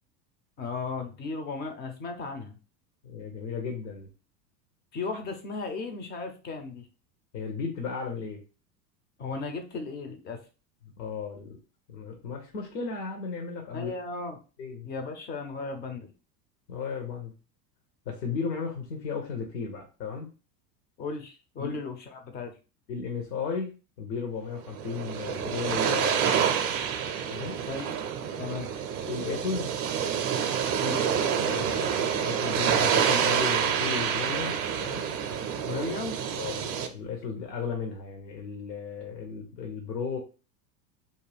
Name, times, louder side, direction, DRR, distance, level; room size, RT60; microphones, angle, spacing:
voice 1, 0.6-2.5 4.9-6.9 9.2-10.4 13.7-14.4 14.8-16.1 21.0-22.5 27.7-27.9 28.4-28.7 30.8-31.1 35.7-36.2, left 4 dB, 20° left, 6 dB, 0.4 m, -35 dB
voice 2, 3.0-4.1 7.3-8.4 11.0-11.6 11.9-13.9 14.6-14.9 16.7-17.3 18.1-20.3 21.6-21.8 22.9-26.5 27.3-27.6 29.1-29.7 30.8-31.0 31.4-35.0 36.4-40.2, left 5 dB, 75° left, 2 dB, 0.9 m, -35 dB
sound 1, 24.6-36.9, right 8 dB, 40° right, 0.5 m, -28 dB
2.6 x 2.2 x 3.3 m, 0.33 s
hypercardioid pair, 90°, 50 cm